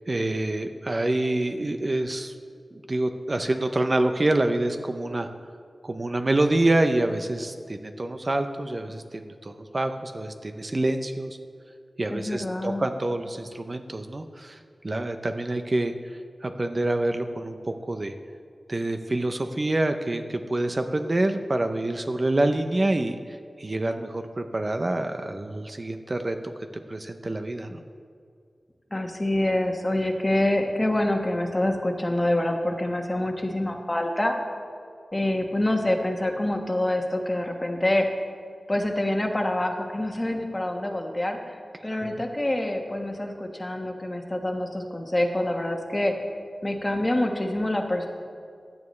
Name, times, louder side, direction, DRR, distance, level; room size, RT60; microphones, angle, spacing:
voice 1, 0.1-2.3 2.7-5.3 5.8-11.4 12.0-18.1 18.7-26.4 26.7-27.8 42.0-42.2, right 2 dB, 35° right, 7 dB, 0.6 m, -27 dB
voice 2, 12.1-12.9 28.9-34.3 35.1-38.1 38.7-46.1 46.6-48.1, left 1 dB, 25° left, 3 dB, 1.4 m, -26 dB
16.5 x 10.5 x 3.2 m, 2.3 s
wide cardioid pair, 80°, 0 cm